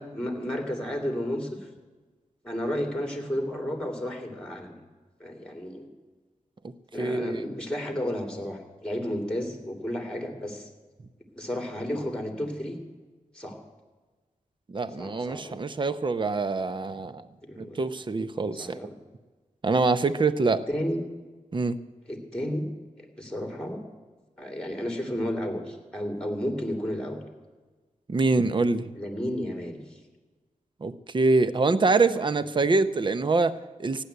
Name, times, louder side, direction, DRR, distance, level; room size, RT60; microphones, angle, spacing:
voice 1, 0.0-1.7 2.4-4.7 5.2-5.9 6.9-10.7 11.3-12.8 13.3-13.6 15.0-15.6 17.5-17.8 18.6-18.9 20.4-21.0 22.1-22.7 23.0-23.8 24.4-27.2 28.9-30.0, equal, 5° left, 4 dB, 2.6 m, -32 dB
voice 2, 7.0-7.4 14.7-17.3 17.6-18.8 19.6-20.6 21.5-21.8 28.1-28.9 30.8-34.0, right 3 dB, 35° right, 12 dB, 0.6 m, -25 dB
15.0 x 9.9 x 8.0 m, 1.3 s
wide cardioid pair, 90°, 13 cm